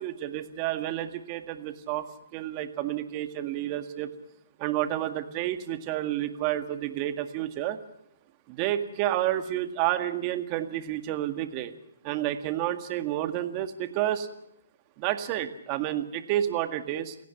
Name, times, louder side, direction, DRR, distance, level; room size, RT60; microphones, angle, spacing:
voice 1, 0.0-4.1 4.6-7.8 8.5-11.7 12.0-14.3 15.0-17.2, right 12 dB, 30° right, 8 dB, 1.9 m, -30 dB
29.0 x 16.5 x 5.9 m, 0.79 s
hypercardioid pair, 145°, 0 cm